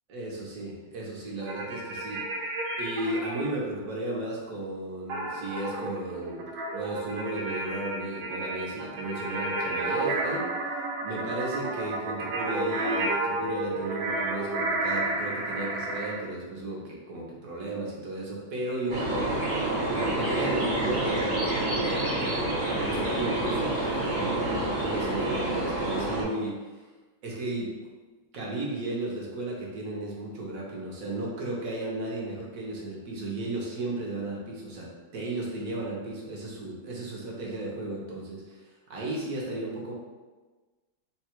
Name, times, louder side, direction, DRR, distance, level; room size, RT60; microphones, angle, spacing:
voice 1, 0.1-2.2 2.8-10.5 11.0-19.4 19.9-22.0 22.7-26.6 27.2-27.7 28.3-39.9, right 2 dB, 55° right, -3 dB, 1.1 m, -34 dB
sound 1, 1.4-3.5 5.1-16.2, right 2 dB, 80° right, 1.3 m, -31 dB
sound 2, 18.9-26.2, right 1 dB, 35° right, 0.9 m, -28 dB
3.8 x 2.3 x 4.3 m, 1.3 s
omnidirectional pair, 2.0 m